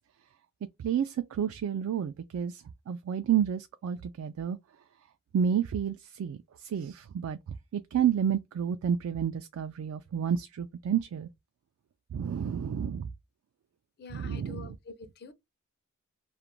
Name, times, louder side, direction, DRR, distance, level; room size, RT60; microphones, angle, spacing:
voice 1, 0.8-4.6 5.3-11.3 12.1-13.1 14.1-14.7, right 8 dB, 80° right, 0.3 m, -30 dB
voice 2, 14.0-15.3, left 4 dB, 50° left, 0.4 m, -46 dB
2.4 x 2.1 x 2.9 m
head